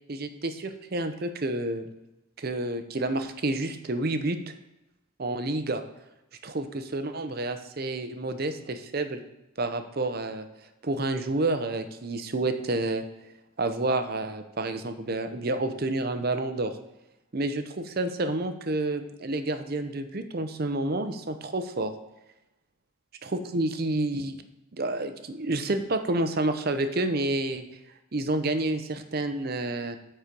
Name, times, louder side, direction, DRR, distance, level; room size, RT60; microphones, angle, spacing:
voice 1, 0.1-1.8 2.4-4.5 5.2-5.8 6.4-9.2 9.6-10.5 10.8-13.0 13.6-16.7 17.3-21.9 23.2-24.4 24.7-27.6 28.1-30.0, right 2 dB, 45° right, 8 dB, 0.6 m, -29 dB
9.5 x 4.4 x 5.2 m, 0.96 s
head